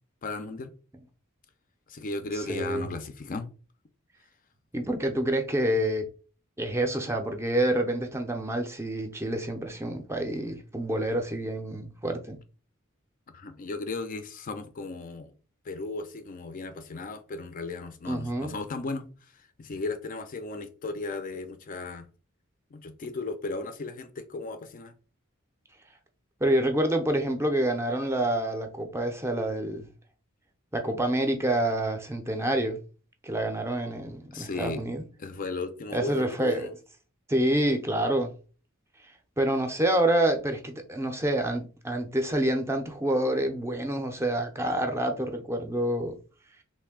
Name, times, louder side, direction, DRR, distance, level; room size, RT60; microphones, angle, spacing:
voice 1, 0.2-0.7 1.9-3.5 13.3-15.3 15.6-19.1 19.3-22.1 22.7-24.9 34.3-34.8 35.2-36.7, left 3 dB, 40° left, 0.4 m, -35 dB
voice 2, 2.4-2.9 4.7-6.1 6.6-12.4 18.0-18.5 26.4-29.9 30.7-32.8 33.2-35.0 35.9-36.7 37.3-38.3 39.4-46.1, right 1 dB, 15° right, 0.5 m, -27 dB
3.2 x 2.6 x 3.6 m
head